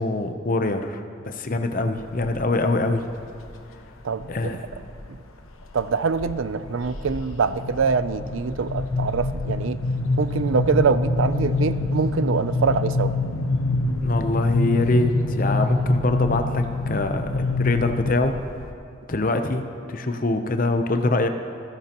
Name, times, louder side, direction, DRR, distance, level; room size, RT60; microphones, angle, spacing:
voice 1, 0.0-3.1 4.3-4.6 13.9-18.3 19.1-21.3, left 2 dB, 40° left, 6 dB, 0.7 m, -24 dB
sound 1, 2.0-2.5 3.0-3.5 4.2-5.1 5.4-5.8 6.1-18.7, left 2 dB, 85° left, 1.0 m, -26 dB
voice 2, 4.0-4.6 5.1-5.2 5.7-9.8 10.2-13.1, right 5 dB, 70° right, 13 dB, 0.5 m, -24 dB
27.0 x 11.0 x 3.0 m, 2.4 s
head